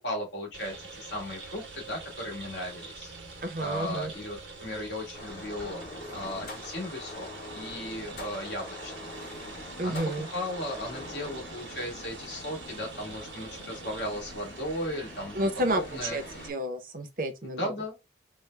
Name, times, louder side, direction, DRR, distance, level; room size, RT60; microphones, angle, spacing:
voice 1, 0.0-3.1 3.6-5.8 6.1-7.3 7.5-9.1 9.8-16.2 17.4-18.0, left 1 dB, 75° left, 1.6 m, -36 dB
sound 1, 0.5-16.5, right 3 dB, 80° right, 0.9 m, -45 dB
voice 2, 3.4-4.1 9.8-10.3 15.3-17.7, right 1 dB, 50° right, 0.6 m, -31 dB
sound 2, 5.1-16.5, left 1 dB, 55° left, 1.2 m, -44 dB
3.2 x 2.1 x 3.2 m
head